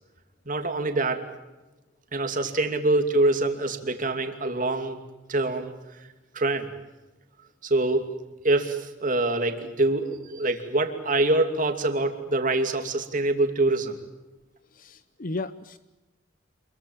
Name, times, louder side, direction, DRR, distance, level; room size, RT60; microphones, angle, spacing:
voice 1, 0.5-1.2 2.1-5.0 5.3-5.7 6.3-6.7 7.6-8.1 8.4-14.0, right 2 dB, 40° right, 6 dB, 2.8 m, -25 dB
voice 2, 14.7-15.8, left 2 dB, 45° left, 13 dB, 0.7 m, -34 dB
27.5 x 22.5 x 7.4 m, 1.1 s
head